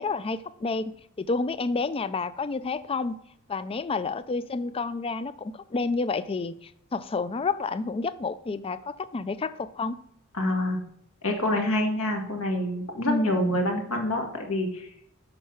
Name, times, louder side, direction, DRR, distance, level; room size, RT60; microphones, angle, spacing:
voice 1, 0.0-3.2 3.5-10.0 13.0-13.4, left 3 dB, 25° left, 14 dB, 0.4 m, -30 dB
voice 2, 10.3-10.8 11.2-14.9, left 1 dB, 70° left, 2 dB, 2.0 m, -27 dB
7.9 x 5.5 x 5.8 m, 0.74 s
head